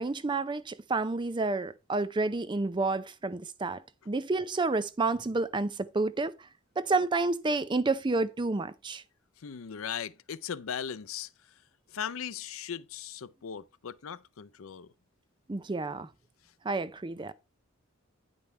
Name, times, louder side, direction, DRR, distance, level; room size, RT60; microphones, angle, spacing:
voice 1, 0.0-6.3 6.8-9.0 15.5-16.1 16.6-17.3, right 3 dB, 20° right, 0.4 m, -30 dB
voice 2, 9.4-11.3 11.9-14.9, left 8 dB, 80° left, 0.5 m, -38 dB
9.6 x 5.3 x 4.3 m
head